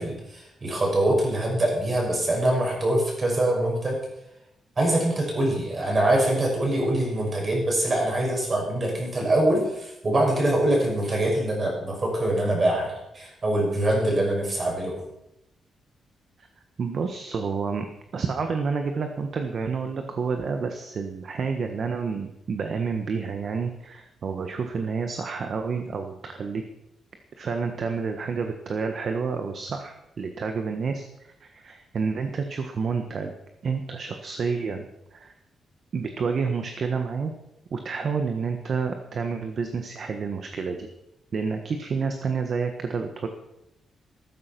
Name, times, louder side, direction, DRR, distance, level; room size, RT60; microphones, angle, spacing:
voice 1, 0.0-4.0 4.8-15.1, right 1 dB, 30° right, -1 dB, 6.1 m, -24 dB
voice 2, 16.8-17.9 18.1-26.6 27.4-33.3 33.6-35.3 35.9-37.3 37.7-40.9 41.3-43.3, right 5 dB, 45° right, 6 dB, 1.4 m, -29 dB
14.5 x 13.5 x 6.0 m, 0.85 s
wide cardioid pair, 165°, 0 cm